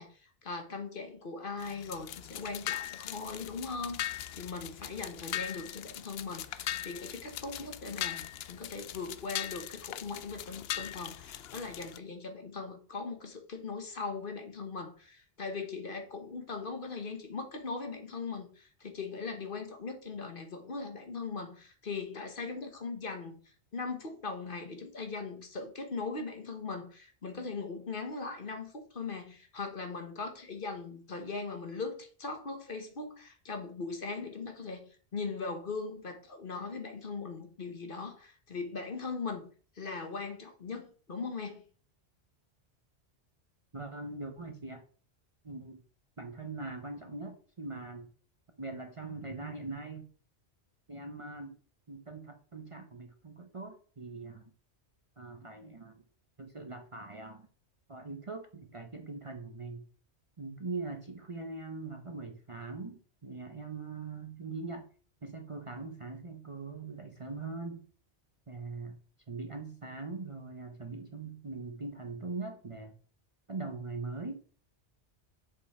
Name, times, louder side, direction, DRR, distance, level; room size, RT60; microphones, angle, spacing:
voice 1, 0.0-34.8 35.1-39.5 39.7-41.6, left 4 dB, 50° left, 5 dB, 1.4 m, -40 dB
sound 1, 1.6-12.0, left 12 dB, 65° left, 0.7 m, -40 dB
voice 2, 43.7-44.8 45.4-45.8 46.2-48.1 48.6-50.0 50.9-51.5 51.9-54.4 55.2-56.0 56.4-57.5 57.9-59.8 60.4-64.9 65.2-67.8 68.5-69.0 69.3-72.9 73.5-74.4, right 3 dB, 30° right, 5 dB, 0.8 m, -41 dB
6.7 x 5.4 x 4.3 m, 0.41 s
omnidirectional pair, 1.2 m